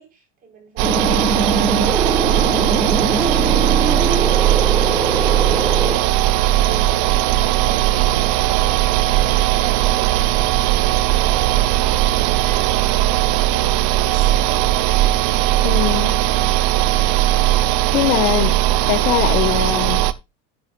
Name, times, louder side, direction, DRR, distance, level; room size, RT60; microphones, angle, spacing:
voice 1, 0.0-5.1 5.4-10.4 10.9-14.7, right 5 dB, 30° right, 5.1 m, -39 dB
sound 1, 0.8-6.0, right 2 dB, 10° right, 1.9 m, -22 dB
sound 2, 0.8-20.1, right 14 dB, 60° right, 0.9 m, -18 dB
voice 2, 15.6-16.2 17.9-18.6 18.9-20.0, left 14 dB, 70° left, 1.6 m, -21 dB
12.0 x 10.5 x 2.4 m
cardioid pair, 160°, 31 cm